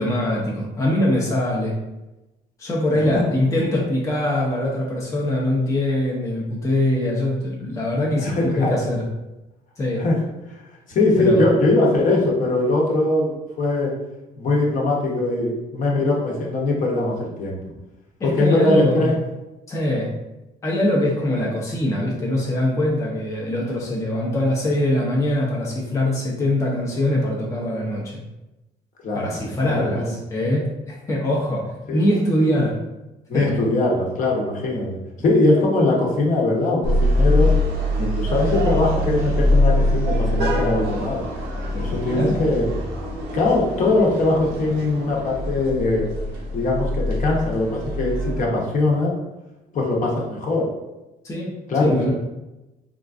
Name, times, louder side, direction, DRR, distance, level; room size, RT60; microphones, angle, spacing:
voice 1, 0.0-1.8 2.6-9.1 9.8-10.0 11.2-11.5 18.2-19.1 19.7-20.1 20.6-28.2 29.1-32.7 33.3-33.5 42.1-42.4 51.2-51.5 51.8-52.1, left 1 dB, 20° left, -3 dB, 0.6 m, -23 dB
voice 2, 8.2-8.8 10.0-10.2 10.9-13.9 14.4-17.6 18.2-19.1 29.0-30.1 31.9-32.0 33.3-37.5 38.0-41.2 41.7-42.7 43.3-46.1 46.5-49.1 49.7-50.7 51.7-51.9, left 2 dB, 50° left, -2 dB, 0.9 m, -21 dB
sound 1, 36.8-48.4, left 1 dB, 90° right, 0.8 m, -23 dB
3.6 x 2.4 x 2.4 m, 1.0 s
cardioid pair, 110°, 17 cm